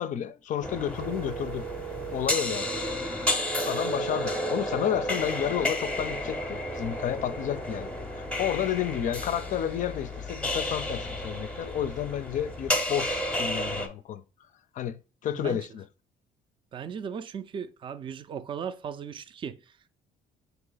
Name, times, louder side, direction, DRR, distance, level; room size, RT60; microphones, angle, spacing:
voice 1, 0.0-1.7 2.1-2.7 3.7-14.2 14.8-15.8, left 10 dB, 50° left, 0.4 m, -31 dB
sound 1, 0.6-13.9, left 1 dB, 5° left, 0.7 m, -32 dB
sound 2, 0.9-3.0, right 16 dB, 75° right, 0.8 m, -39 dB
voice 2, 16.7-19.6, right 7 dB, 30° right, 0.3 m, -37 dB
3.9 x 2.9 x 3.9 m
cardioid pair, 110°, 17 cm